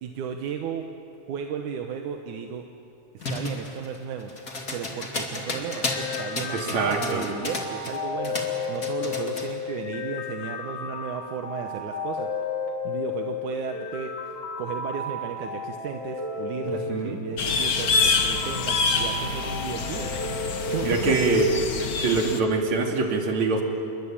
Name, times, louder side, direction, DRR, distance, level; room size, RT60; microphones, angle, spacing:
voice 1, 0.0-0.9 1.3-2.6 3.1-4.3 4.7-12.3 12.8-14.1 14.6-20.1 20.7-21.4, right 7 dB, 85° right, 4 dB, 2.7 m, -34 dB
sound 1, 3.2-8.0 8.2-9.5, left 2 dB, 30° left, 2.9 m, -32 dB
sound 2, 5.7-21.7, left 4 dB, 90° left, 4.9 m, -33 dB
voice 2, 6.5-7.3 16.9-17.2 20.8-21.5 22.0-23.6, right 3 dB, 70° right, 2 dB, 4.0 m, -24 dB
sound 3, 17.4-22.4, left 4 dB, 50° left, 1.1 m, -26 dB
28.5 x 23.0 x 8.8 m, 2.6 s
omnidirectional pair, 3.4 m